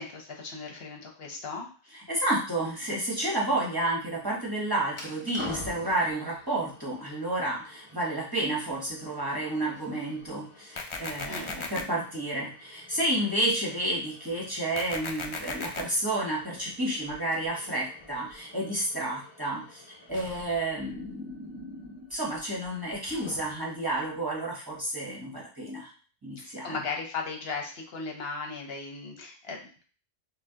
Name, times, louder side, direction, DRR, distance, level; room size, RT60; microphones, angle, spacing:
voice 1, 0.0-1.7 11.2-11.5 26.4-29.8, left 4 dB, 65° left, 1 dB, 1.0 m, -37 dB
voice 2, 1.9-25.9 26.2-26.8, right 1 dB, 20° right, -4 dB, 0.9 m, -31 dB
sound 1, 4.9-23.8, left 2 dB, 35° left, 0.7 m, -49 dB
sound 2, 10.8-11.8 14.8-15.8, left 4 dB, 50° left, 0.3 m, -35 dB
5.7 x 2.1 x 2.8 m, 0.39 s
omnidirectional pair, 1.1 m